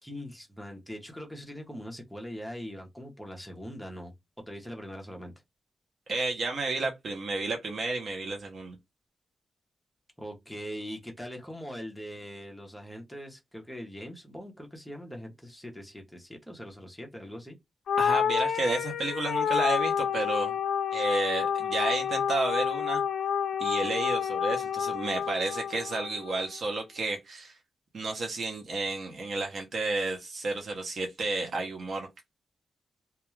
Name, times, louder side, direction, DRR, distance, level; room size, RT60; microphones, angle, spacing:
voice 1, 0.0-4.1 4.5-5.3 10.2-17.6, equal, ahead, 0.7 m, -41 dB
voice 2, 6.1-8.8 18.0-20.6 20.9-23.0 23.6-27.6 27.9-32.1, right 3 dB, 50° right, 0.6 m, -31 dB
sound 1, 17.9-26.4, left 7 dB, 80° left, 0.3 m, -29 dB
2.3 x 2.2 x 3.0 m
wide cardioid pair, 165°, 0 cm